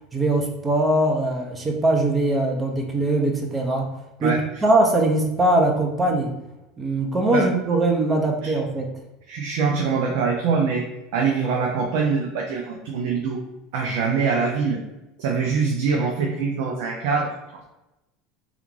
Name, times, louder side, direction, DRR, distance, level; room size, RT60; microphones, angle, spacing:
voice 1, 0.1-3.9 4.2-4.3 4.6-6.3 6.8-8.8, right 2 dB, 25° right, 1 dB, 0.7 m, -21 dB
voice 2, 9.3-10.9 11.1-13.4 13.7-14.8 15.2-17.6, right 5 dB, 70° right, 0 dB, 0.5 m, -24 dB
3.5 x 2.4 x 3.1 m, 0.95 s
hypercardioid pair, 90°, 0 cm